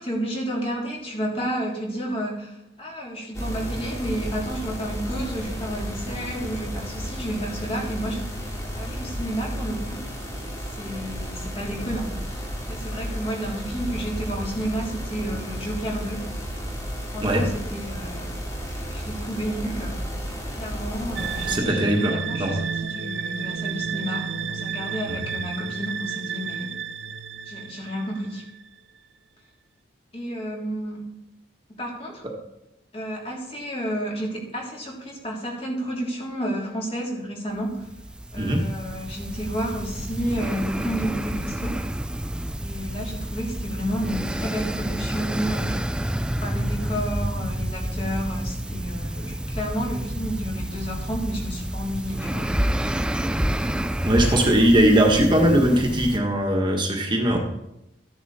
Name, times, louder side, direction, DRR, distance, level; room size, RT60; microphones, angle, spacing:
voice 1, 0.0-10.0 10.8-16.2 17.1-18.3 18.6-20.0 20.6-26.7 27.5-28.4 30.1-31.0 31.8-32.2 32.9-37.9 38.3-41.8 42.6-52.5, equal, 35° left, -2 dB, 3.5 m, -31 dB
sound 1, 3.3-21.6, equal, 20° left, 2.5 m, -33 dB
sound 2, 21.2-28.7, right 6 dB, 85° right, 0.6 m, -31 dB
voice 2, 21.5-22.6 25.1-25.2 38.4-38.6 54.0-57.4, right 1 dB, 25° right, 1 dB, 1.6 m, -20 dB
sound 3, 37.7-56.2, right 1 dB, 5° right, 0.5 m, -29 dB
14.5 x 10.5 x 4.4 m, 0.88 s
head